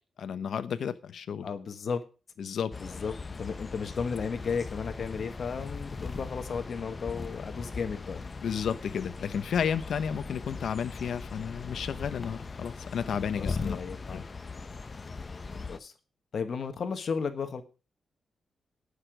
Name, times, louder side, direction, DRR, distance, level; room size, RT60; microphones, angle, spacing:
voice 1, 0.2-1.5 2.4-2.7 8.4-13.8 14.1-14.2, left 7 dB, 65° left, 11 dB, 1.0 m, -32 dB
voice 2, 1.4-2.0 2.8-8.2 13.4-14.2 15.5-15.9 16.3-17.6, left 5 dB, 45° left, 8 dB, 1.4 m, -34 dB
sound 1, 2.7-15.8, left 4 dB, 25° left, 0.7 m, -39 dB
18.5 x 6.7 x 5.1 m, 0.34 s
wide cardioid pair, 180°, 0 cm